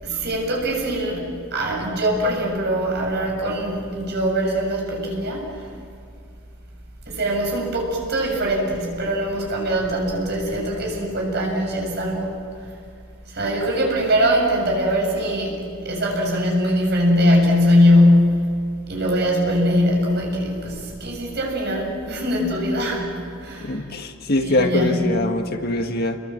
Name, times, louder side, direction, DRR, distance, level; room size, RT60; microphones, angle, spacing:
voice 1, 0.0-5.7 7.1-12.4 13.3-18.5 18.9-23.8 24.4-25.0, equal, 55° right, -1 dB, 7.0 m, -21 dB
voice 2, 23.6-26.2, left 2 dB, 50° left, 5 dB, 1.7 m, -23 dB
29.5 x 22.5 x 7.6 m, 2.3 s
head